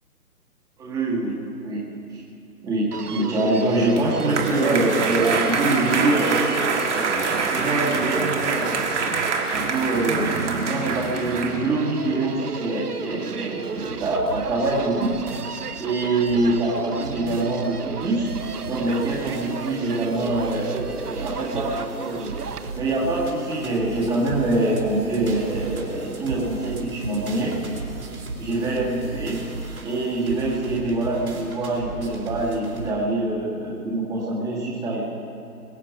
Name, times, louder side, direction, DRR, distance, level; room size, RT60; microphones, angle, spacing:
voice 1, 0.8-2.2 2.6-8.8 9.6-10.3 10.6-15.1 15.8-18.3 18.7-22.3 22.7-27.6 28.4-29.4 29.8-35.0, right 2 dB, 10° right, -7 dB, 1.9 m, -25 dB
Human voice, 2.9-22.7, right 5 dB, 85° right, 0.9 m, -34 dB
sound 1, 3.7-11.5, right 4 dB, 50° right, 1.9 m, -25 dB
sound 2, 13.6-32.9, right 3 dB, 65° right, 3.6 m, -37 dB
22.0 x 8.7 x 5.9 m, 2.6 s
figure-of-eight pair, 140°, 45 cm